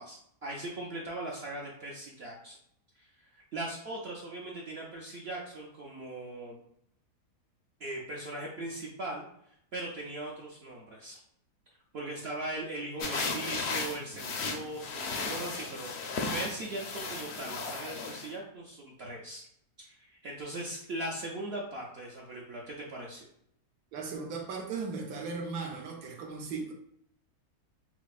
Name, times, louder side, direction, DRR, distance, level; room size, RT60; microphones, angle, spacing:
voice 1, 0.0-2.6 3.0-6.6 7.8-11.2 11.9-19.4 19.8-23.3, right 1 dB, 60° right, -3 dB, 0.6 m, -39 dB
sound 1, 13.0-18.3, left 4 dB, 70° left, 0.6 m, -35 dB
voice 2, 23.9-26.7, right 4 dB, 80° right, 2 dB, 1.3 m, -37 dB
5.8 x 2.0 x 2.3 m, 0.70 s
omnidirectional pair, 1.7 m